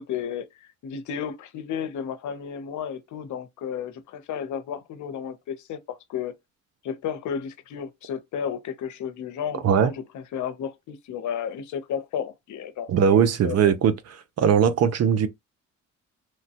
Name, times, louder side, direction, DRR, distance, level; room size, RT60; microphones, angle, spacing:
voice 1, 0.0-6.3 6.8-13.7, left 8 dB, 75° left, 0.7 m, -33 dB
voice 2, 12.9-13.9 14.4-15.3, right 7 dB, 55° right, 0.6 m, -19 dB
3.1 x 2.2 x 2.8 m
cardioid pair, 90°, 30 cm